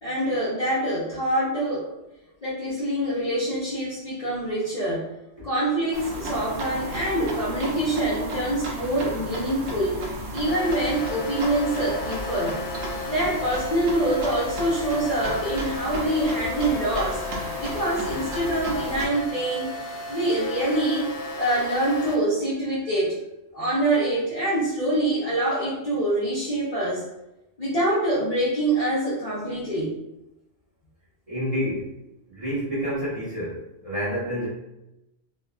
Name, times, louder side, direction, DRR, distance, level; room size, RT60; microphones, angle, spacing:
voice 1, 0.0-1.9 2.4-5.1 5.4-10.1 10.3-12.6 13.1-17.2 17.6-21.1 21.4-23.2 23.5-27.1 27.6-29.9, right 1 dB, 40° left, -10 dB, 0.6 m, -25 dB
sound 1, 5.9-19.1, right 1 dB, 90° right, 1.0 m, -34 dB
sound 2, 10.5-22.1, left 3 dB, 80° left, 0.9 m, -34 dB
voice 2, 31.3-31.9 32.3-33.5 33.8-34.5, equal, 30° right, -10 dB, 1.1 m, -28 dB
2.7 x 2.3 x 2.3 m, 0.91 s
omnidirectional pair, 1.3 m